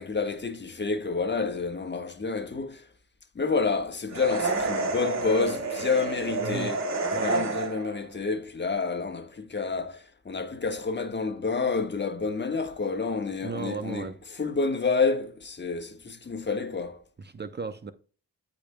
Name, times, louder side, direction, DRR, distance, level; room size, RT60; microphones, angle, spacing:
voice 1, 0.0-2.9 3.3-6.8 7.1-17.0, left 4 dB, 30° left, 1.5 m, -29 dB
sound 1, 4.1-8.0, right 3 dB, 50° right, 2.6 m, -29 dB
voice 2, 6.4-6.8 7.1-7.4 13.4-14.2 17.2-17.9, right 4 dB, 30° right, 0.8 m, -35 dB
13.5 x 5.3 x 2.3 m
supercardioid pair, 65°, 35 cm